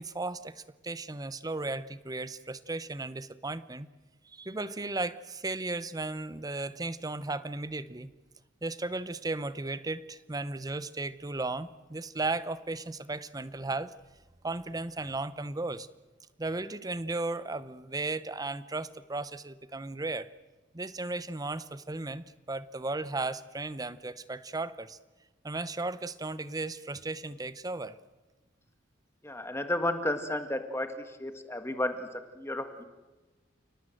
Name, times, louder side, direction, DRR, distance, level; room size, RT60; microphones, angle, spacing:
voice 1, 0.0-3.9 4.2-8.1 8.6-14.0 14.4-15.9 16.4-20.3 20.7-25.0 25.4-27.9, right 2 dB, 20° right, 15 dB, 0.7 m, -35 dB
voice 2, 29.2-30.9 31.2-32.8, left 1 dB, 15° left, 8 dB, 1.7 m, -32 dB
29.5 x 18.5 x 7.8 m, 1.2 s
head